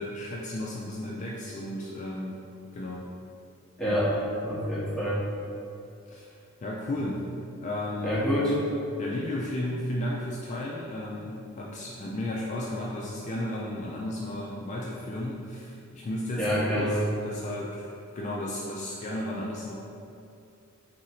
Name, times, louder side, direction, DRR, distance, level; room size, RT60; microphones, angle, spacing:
voice 1, 0.0-2.4 2.7-3.1 3.9-4.0 6.1-6.3 6.6-7.3 7.6-8.2 9.0-17.9 18.1-19.7, left 1 dB, 30° left, -4 dB, 0.3 m, -34 dB
voice 2, 3.8-4.1 4.4-5.2 8.0-8.6 16.4-17.0, equal, 5° left, -8 dB, 0.8 m, -26 dB
3.9 x 2.5 x 4.3 m, 2.6 s
head